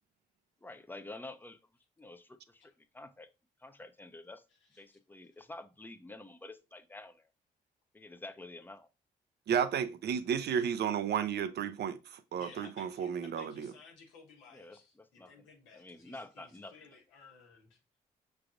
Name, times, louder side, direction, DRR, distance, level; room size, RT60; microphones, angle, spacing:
voice 1, 0.6-1.6 2.0-3.3 3.6-4.4 4.8-7.2 7.9-8.9 14.5-15.5 15.7-16.7, left 2 dB, 10° left, 0.6 m, -49 dB
voice 2, 9.5-13.7, right 8 dB, 60° right, 0.5 m, -32 dB
voice 3, 12.4-17.8, left 4 dB, 85° left, 1.2 m, -56 dB
5.8 x 3.3 x 2.5 m
hypercardioid pair, 45°, 19 cm